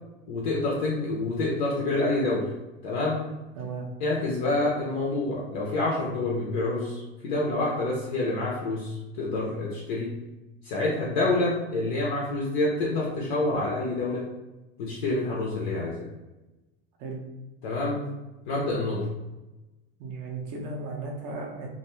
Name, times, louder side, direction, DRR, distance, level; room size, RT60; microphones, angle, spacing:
voice 1, 0.3-2.5 2.8-3.2 4.0-10.1 10.6-14.2 14.8-16.1 17.6-18.0 18.5-19.1, left 2 dB, 50° left, -4 dB, 0.5 m, -27 dB
voice 2, 3.6-3.9 17.0-17.2 20.0-21.7, right 3 dB, 30° right, 0 dB, 0.4 m, -35 dB
2.4 x 2.2 x 2.9 m, 1.1 s
supercardioid pair, 180°, 30 cm